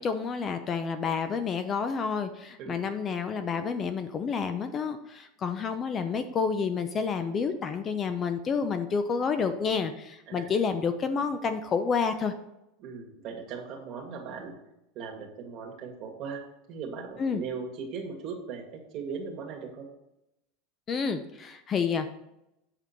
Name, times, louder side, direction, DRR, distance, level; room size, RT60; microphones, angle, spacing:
voice 1, 0.0-12.3 17.2-17.4 20.9-22.1, left 5 dB, 25° left, 9 dB, 0.6 m, -29 dB
voice 2, 12.8-14.6 14.9-16.4 16.7-19.9, right 5 dB, 40° right, 1 dB, 2.1 m, -38 dB
8.4 x 6.9 x 4.5 m, 0.86 s
supercardioid pair, 150°, 0 cm